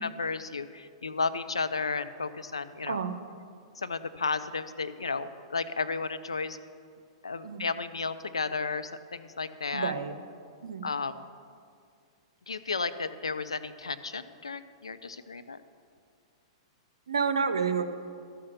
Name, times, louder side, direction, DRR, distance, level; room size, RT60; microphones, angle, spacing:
voice 1, 0.0-3.0 3.8-6.6 7.2-9.9 10.8-11.1 12.5-15.6, left 4 dB, 90° left, 12 dB, 0.5 m, -33 dB
voice 2, 9.7-10.2 10.6-10.9 17.1-17.9, right 5 dB, 85° right, 9 dB, 0.7 m, -29 dB
12.5 x 5.8 x 6.6 m, 2.3 s
hypercardioid pair, 110°, 3 cm